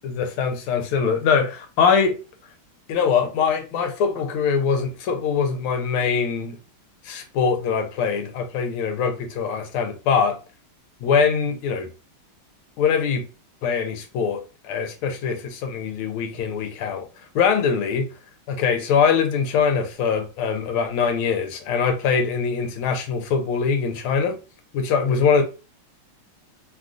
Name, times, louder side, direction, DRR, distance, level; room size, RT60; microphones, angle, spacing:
voice 1, 0.0-2.2 2.9-6.6 7.0-10.4 11.0-11.9 12.8-13.2 13.6-17.0 17.3-18.1 18.5-24.4 24.7-25.4, left 6 dB, 80° left, 1.5 m, -22 dB
3.5 x 2.4 x 2.4 m
omnidirectional pair, 2.3 m